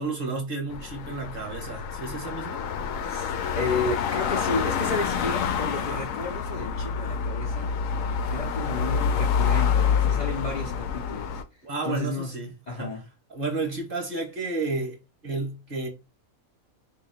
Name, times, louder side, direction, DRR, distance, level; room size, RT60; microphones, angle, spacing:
voice 1, 0.0-2.6 5.8-6.0 8.3-8.4 11.6-12.5 12.8-12.9 13.3-15.0 15.2-15.9, right 3 dB, 45° right, 1.1 m, -31 dB
sound 1, 0.7-11.4, left 6 dB, 70° left, 0.9 m, -27 dB
voice 2, 3.0-7.7 8.3-12.4 12.7-13.0, left 3 dB, 40° left, 0.7 m, -32 dB
2.9 x 2.6 x 4.3 m
omnidirectional pair, 1.5 m